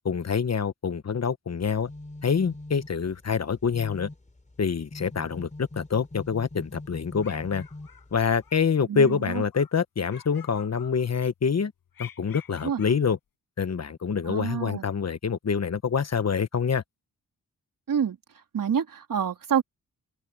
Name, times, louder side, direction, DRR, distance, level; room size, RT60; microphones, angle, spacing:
voice 1, 0.0-1.9 2.2-4.1 4.6-7.6 8.1-11.7 12.0-13.2 13.6-16.8, left 6 dB, 45° left, 1.3 m, -26 dB
sound 1, 1.6-8.5, left 2 dB, 20° left, 4.6 m, -43 dB
sound 2, 7.2-8.6 9.0-9.8 10.1-11.3 11.9-13.0, left 8 dB, 85° left, 5.6 m, -49 dB
voice 2, 8.9-9.4 12.6-12.8 14.3-14.8 17.9-18.2 18.5-19.6, right 8 dB, 70° right, 3.5 m, -27 dB
open air
cardioid pair, 60°, 35 cm